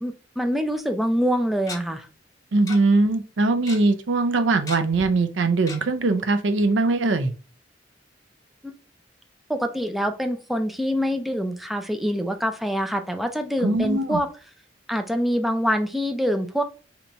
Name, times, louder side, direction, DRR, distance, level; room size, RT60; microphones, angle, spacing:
voice 1, 0.0-2.1 8.6-8.7 9.5-14.3 14.9-16.6, equal, ahead, 6 dB, 0.4 m, -25 dB
Tick-tock, 0.8-0.9 1.7-1.8 2.7-2.8 3.0-3.1 3.4-3.8 4.7-5.1 5.7-5.8 6.2-6.3 6.6-6.7, left 3 dB, 20° left, 0.8 m, -36 dB
voice 2, 2.5-7.3 13.6-14.2, right 3 dB, 80° right, 9 dB, 0.5 m, -21 dB
2.9 x 2.6 x 4.4 m, 0.36 s
head